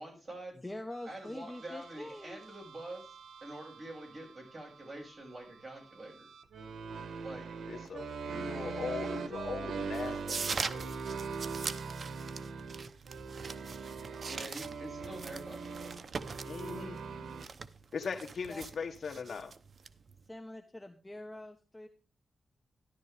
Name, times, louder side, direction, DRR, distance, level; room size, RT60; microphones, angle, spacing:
voice 1, 0.0-0.6 1.1-6.3 7.2-7.5 14.3-16.0, right 1 dB, 25° right, 1 dB, 6.8 m, -46 dB
voice 2, 0.6-2.6 18.5-18.7 19.3-19.4 20.3-21.9, left 1 dB, 15° left, 6 dB, 1.1 m, -45 dB
sound 1, 0.9-17.5, right 5 dB, 90° right, 1.2 m, -42 dB
voice 3, 7.7-11.0 16.4-17.0 17.9-19.5, left 5 dB, 65° left, 6 dB, 1.6 m, -40 dB
sound 2, 9.9-20.3, right 5 dB, 50° right, 0.8 m, -42 dB
13.5 x 11.5 x 3.4 m, 0.37 s
wide cardioid pair, 125°, 0 cm